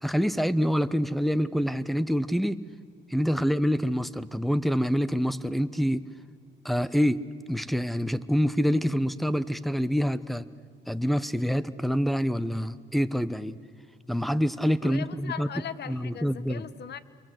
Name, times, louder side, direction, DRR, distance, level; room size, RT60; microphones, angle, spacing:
voice 1, 0.0-2.6 3.1-6.1 6.6-10.5 10.9-13.6 14.1-15.5 15.9-16.6, equal, ahead, 15 dB, 1.0 m, -26 dB
voice 2, 14.8-17.0, left 8 dB, 55° left, 14 dB, 1.3 m, -39 dB
29.0 x 23.5 x 7.9 m, 2.1 s
cardioid pair, 90°, 20 cm